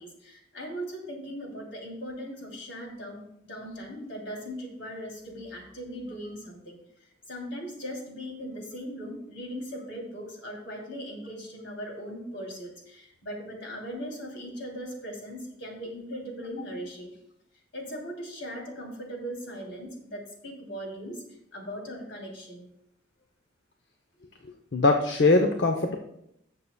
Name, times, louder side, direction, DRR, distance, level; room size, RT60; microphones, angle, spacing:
voice 1, 0.0-6.8 7.3-17.1 17.7-21.2 21.5-22.7, equal, 80° left, 0 dB, 2.9 m, -39 dB
voice 2, 24.7-26.0, left 3 dB, 60° left, 4 dB, 0.7 m, -21 dB
18.0 x 6.7 x 2.2 m, 0.77 s
head